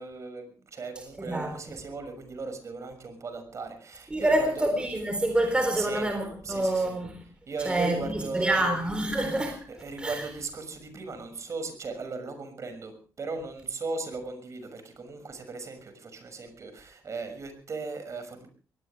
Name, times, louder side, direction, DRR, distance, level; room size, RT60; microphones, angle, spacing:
voice 1, 0.0-4.7 5.8-6.1 6.4-6.9 7.5-8.7 9.7-18.5, right 3 dB, 50° right, 6.3 m, -37 dB
voice 2, 1.2-1.6 4.1-7.2 7.6-9.6 10.0-10.2, right 1 dB, 15° right, 3.8 m, -27 dB
22.5 x 18.5 x 3.4 m
wide cardioid pair, 125°, 7 cm